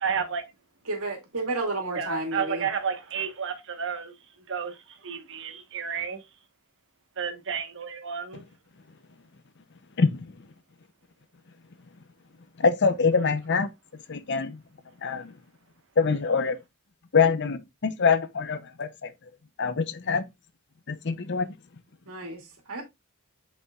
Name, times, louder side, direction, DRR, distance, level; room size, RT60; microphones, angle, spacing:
voice 1, 0.0-0.4 2.0-4.1 4.5-4.8 5.0-6.2 7.2-8.4, right 6 dB, 60° right, 1.2 m, -31 dB
voice 2, 0.9-2.7 22.1-22.8, right 2 dB, 75° right, 2.4 m, -31 dB
voice 3, 12.6-13.7 14.1-14.6 15.0-15.3 16.0-16.6 17.1-19.1 19.6-20.2 20.9-21.5, left 5 dB, 55° left, 0.7 m, -24 dB
7.8 x 5.4 x 2.4 m
head